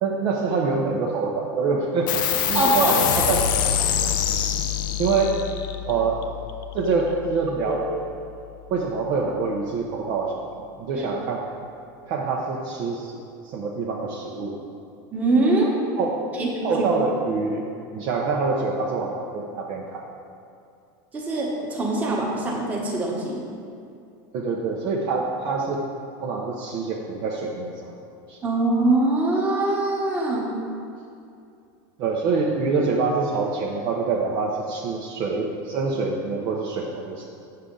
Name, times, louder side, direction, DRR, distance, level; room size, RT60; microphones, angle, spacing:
voice 1, 0.0-2.2 2.5-2.9 3.2-3.5 5.0-5.4 5.8-6.2 6.7-7.8 8.7-11.4 12.0-13.2 13.4-14.6 16.0-16.2 16.6-17.7 17.9-20.1 24.3-25.8 26.2-27.9 28.3-28.4 32.0-37.2, right 4 dB, 40° right, -2 dB, 0.7 m, -25 dB
sound 1, 2.1-9.0, left 9 dB, 75° left, 0.6 m, -26 dB
voice 2, 2.5-3.0 7.6-7.8 10.9-11.1 15.1-15.7 16.4-16.5 21.1-23.4 28.4-30.5, right 2 dB, 15° right, -3 dB, 1.2 m, -23 dB
8.3 x 6.6 x 3.8 m, 2.5 s
supercardioid pair, 160°, 11 cm